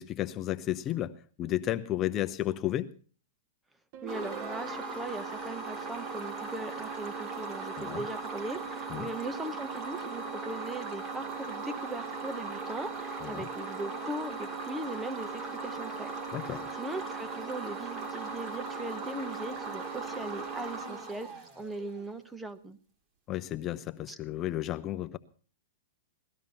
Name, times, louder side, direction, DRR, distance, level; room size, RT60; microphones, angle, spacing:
voice 1, 0.0-2.9 7.8-8.0 8.9-9.1 13.2-13.5 16.3-16.7 23.3-25.2, left 13 dB, 30° left, 0.8 m, -33 dB
sound 1, 3.9-5.4, right 9 dB, 50° right, 1.2 m, -44 dB
voice 2, 4.0-22.8 24.1-24.2, right 2 dB, 5° right, 1.1 m, -40 dB
sound 2, 4.1-22.0, right 4 dB, 35° right, 3.6 m, -38 dB
18.5 x 12.5 x 5.6 m
hypercardioid pair, 135°, 0 cm